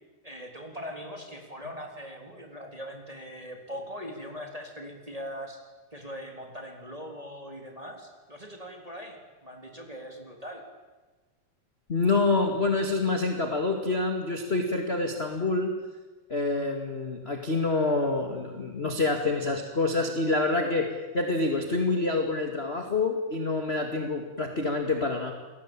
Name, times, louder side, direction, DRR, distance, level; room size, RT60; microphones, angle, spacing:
voice 1, 0.2-5.6 5.9-10.7, equal, 10° right, 2 dB, 3.2 m, -41 dB
voice 2, 11.9-15.7 16.3-25.3, left 3 dB, 25° left, 4 dB, 1.5 m, -27 dB
29.0 x 21.0 x 9.0 m, 1.2 s
omnidirectional pair, 4.5 m